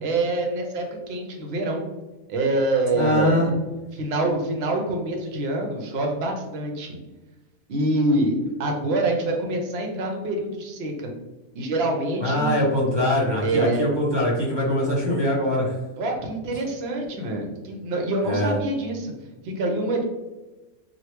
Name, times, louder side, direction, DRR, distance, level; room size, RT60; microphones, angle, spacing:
voice 1, 0.0-1.8 2.3-3.5 3.9-7.0 7.7-11.1 11.5-12.6 13.4-13.9 16.0-19.1 19.4-20.0, right 2 dB, 60° right, 2 dB, 0.8 m, -25 dB
voice 2, 2.9-3.5 12.2-15.7 18.2-18.6, left 1 dB, 25° right, -5 dB, 0.7 m, -22 dB
3.2 x 2.5 x 2.9 m, 1.1 s
omnidirectional pair, 1.5 m